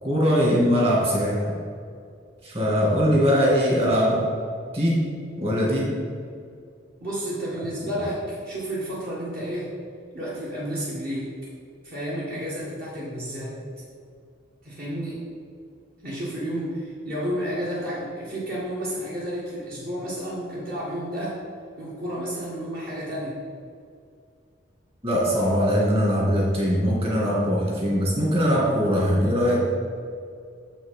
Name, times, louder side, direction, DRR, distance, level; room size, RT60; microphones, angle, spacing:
voice 1, 0.0-1.5 2.4-4.3 4.7-5.0 5.4-5.9 25.0-29.7, equal, 30° right, -4 dB, 2.3 m, -21 dB
voice 2, 7.0-9.7 10.1-11.3 11.8-13.6 14.6-15.2 16.0-21.4 21.8-23.4, equal, 50° right, -7 dB, 1.7 m, -31 dB
7.0 x 6.1 x 5.6 m, 2.3 s
head